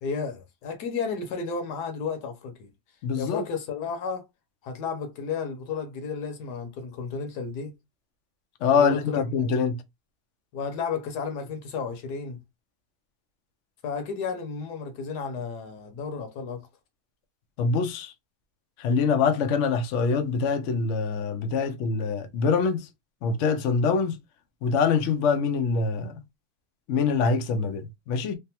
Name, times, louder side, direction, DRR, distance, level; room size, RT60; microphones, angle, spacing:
voice 1, 0.0-2.7 3.2-4.2 4.6-7.8 8.7-9.6 10.5-12.4 13.8-16.7, left 5 dB, 90° left, 1.4 m, -33 dB
voice 2, 3.0-3.4 8.6-9.8 17.6-18.1 18.8-22.9 23.2-24.2 24.6-26.1 26.9-28.4, left 5 dB, 65° left, 0.7 m, -24 dB
3.3 x 2.0 x 2.7 m
omnidirectional pair, 1.7 m